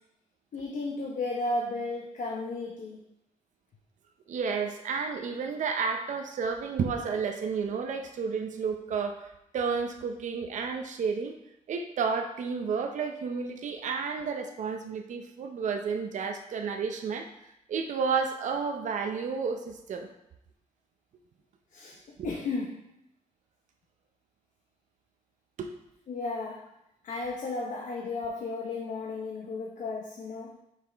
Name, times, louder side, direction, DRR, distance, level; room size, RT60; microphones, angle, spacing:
voice 1, 0.5-3.0 21.7-22.8 26.1-26.7 27.0-30.6, left 3 dB, 70° left, -1 dB, 0.8 m, -34 dB
voice 2, 4.3-9.3 9.5-11.3 11.7-17.3 17.7-20.1 22.2-22.3 25.6-25.7, right 5 dB, 70° right, 4 dB, 0.6 m, -31 dB
5.8 x 4.9 x 3.4 m, 0.83 s
wide cardioid pair, 150°, 13 cm